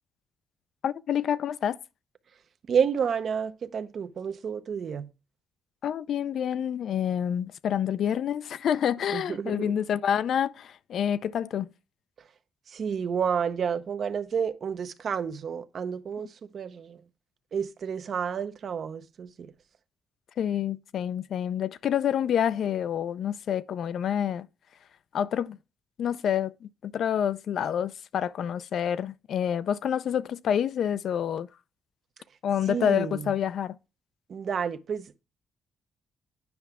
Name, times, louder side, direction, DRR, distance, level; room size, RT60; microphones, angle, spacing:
voice 1, 0.8-1.8 5.8-11.7 20.4-24.5 25.1-25.6 26.0-31.5 32.4-33.8, left 9 dB, 65° left, 0.4 m, -28 dB
voice 2, 2.7-5.1 9.1-9.7 12.7-17.0 17.5-19.5 32.7-33.3 34.3-35.2, right 7 dB, 55° right, 0.7 m, -30 dB
9.4 x 5.6 x 3.5 m
cardioid pair, 90°, 0 cm